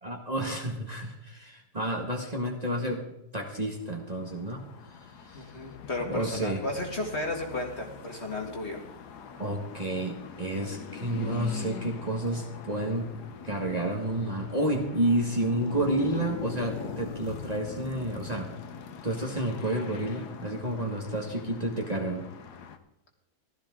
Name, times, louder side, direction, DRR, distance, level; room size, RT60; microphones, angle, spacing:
voice 1, 0.0-3.0 3.3-4.6 5.2-5.5 6.1-6.6 9.4-13.1 13.4-18.5 19.0-22.3, right 1 dB, 25° right, 0 dB, 1.7 m, -30 dB
sound 1, 3.9-22.8, left 6 dB, 90° left, 1.6 m, -42 dB
voice 2, 5.3-8.8, left 2 dB, 45° left, 1 dB, 2.2 m, -34 dB
15.5 x 13.0 x 3.8 m, 0.88 s
omnidirectional pair, 1.7 m